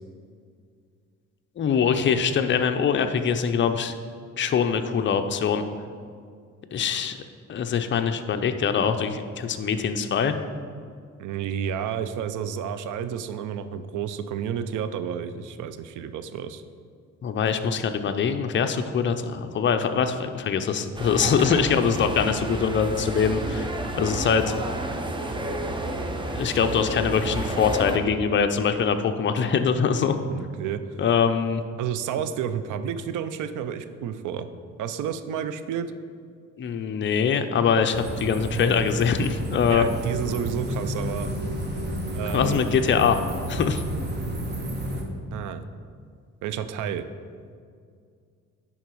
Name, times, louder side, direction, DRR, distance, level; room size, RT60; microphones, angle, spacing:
voice 1, 1.6-3.9 4.4-5.6 6.7-7.2 7.5-10.3 17.2-23.7 23.9-24.5 26.3-30.2 31.0-31.6 36.6-39.9 42.3-43.2 43.5-43.8, left 6 dB, 40° left, 7 dB, 0.6 m, -23 dB
voice 2, 11.2-16.6 21.2-21.6 30.3-30.8 31.8-34.5 34.8-35.9 39.6-41.3 42.1-42.6 45.3-45.6 46.4-47.1, right 8 dB, 80° right, 11 dB, 0.6 m, -31 dB
sound 1, 21.0-28.0, right 1 dB, 15° right, 0.8 m, -31 dB
sound 2, 37.9-45.0, right 1 dB, 35° right, 1.2 m, -31 dB
10.5 x 3.8 x 4.6 m, 2.2 s
cardioid pair, 90°, 30 cm